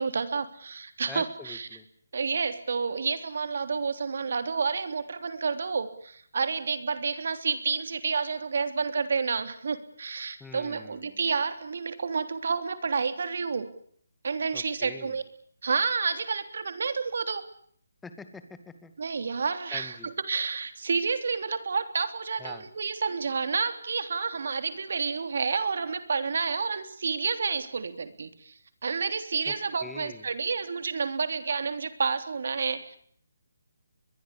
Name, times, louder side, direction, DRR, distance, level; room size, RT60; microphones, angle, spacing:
voice 1, 0.0-1.7 2.1-13.7 14.2-15.2 15.6-17.4 19.0-28.5 28.8-33.0, right 5 dB, 60° right, 10 dB, 3.3 m, -30 dB
voice 2, 1.1-1.9 10.4-11.2 14.5-15.2 18.0-18.9 19.7-20.1 22.4-22.7 29.5-29.6 29.8-30.3, left 4 dB, 5° left, 9 dB, 2.1 m, -45 dB
24.0 x 22.5 x 8.6 m, 0.63 s
hypercardioid pair, 165°, 0 cm